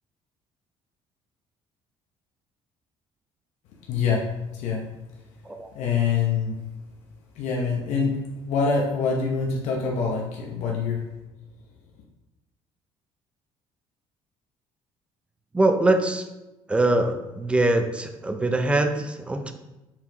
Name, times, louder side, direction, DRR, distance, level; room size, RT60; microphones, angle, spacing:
voice 1, 3.9-4.3 4.5-4.9 5.7-6.6 7.3-11.0, left 5 dB, 80° left, -2 dB, 0.9 m, -25 dB
voice 2, 15.5-16.2 16.7-19.5, right 2 dB, 10° right, 6 dB, 0.4 m, -23 dB
5.8 x 4.7 x 3.9 m, 1.0 s
cardioid pair, 170°, 12 cm